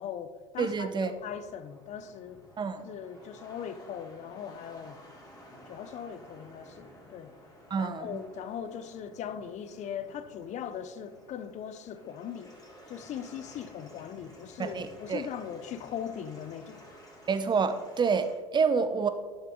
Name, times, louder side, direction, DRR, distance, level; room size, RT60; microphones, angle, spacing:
voice 1, 0.0-2.4 2.8-5.0 5.7-7.3 7.8-12.5 12.9-16.9, left 8 dB, 45° left, 0.8 m, -40 dB
voice 2, 0.6-1.1 2.6-2.9 7.7-8.2 14.6-15.3 17.3-19.1, right 5 dB, 25° right, 0.9 m, -28 dB
sound 1, 0.7-18.3, equal, 20° left, 2.6 m, -53 dB
12.0 x 6.7 x 3.8 m
hypercardioid pair, 75°, 17 cm